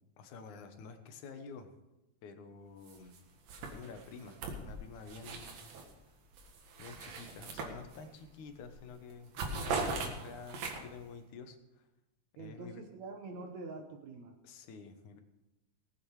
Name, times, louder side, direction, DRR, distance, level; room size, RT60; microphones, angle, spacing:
voice 1, 0.2-1.7 2.2-3.2 3.7-5.6 6.8-11.9 12.4-12.8 14.4-15.2, left 5 dB, 65° left, 7 dB, 2.4 m, -49 dB
sound 1, 2.9-3.2 3.5-5.9 6.3-8.2 8.6-8.8 9.1-11.0, right 4 dB, 90° right, 3.4 m, -40 dB
voice 2, 12.4-14.4, right 3 dB, 70° right, 4 dB, 2.0 m, -45 dB
18.5 x 8.7 x 4.8 m, 0.97 s
omnidirectional pair, 3.9 m